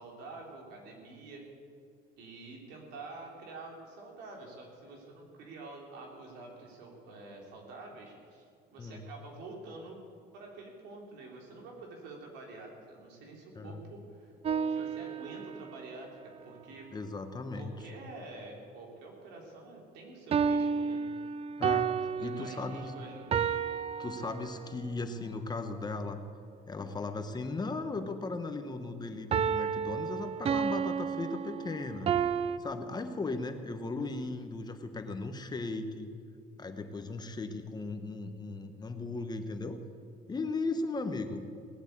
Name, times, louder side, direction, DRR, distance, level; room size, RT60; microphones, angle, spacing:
voice 1, 0.0-1.5 2.2-10.0 10.3-14.3 14.7-16.9 17.5-21.0 22.1-23.3, right 3 dB, 90° right, 0 dB, 3.8 m, -47 dB
sound 1, 14.4-15.8 20.3-24.8 29.3-32.6, right 7 dB, 35° right, 0.5 m, -31 dB
voice 2, 16.9-17.7 21.6-22.9 24.0-26.2 26.7-32.1 32.6-36.1 36.6-39.8 40.3-41.4, left 3 dB, 25° left, 7 dB, 1.3 m, -37 dB
18.5 x 8.1 x 8.5 m, 2.2 s
cardioid pair, 110°, 17 cm